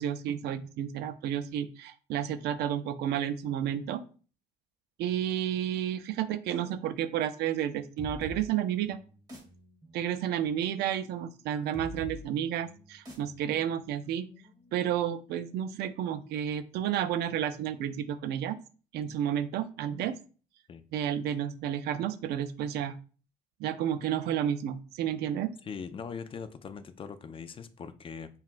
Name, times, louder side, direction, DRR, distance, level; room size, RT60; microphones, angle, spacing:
voice 1, 0.0-4.0 5.0-9.0 9.9-14.3 14.7-18.6 18.9-20.2 20.9-22.9 23.6-25.5, right 10 dB, 75° right, 0.5 m, -31 dB
sound 1, 8.0-15.4, equal, 20° right, 1.1 m, -48 dB
voice 2, 25.6-28.3, left 6 dB, 30° left, 0.4 m, -41 dB
5.5 x 2.4 x 2.5 m
cardioid pair, 110°, 17 cm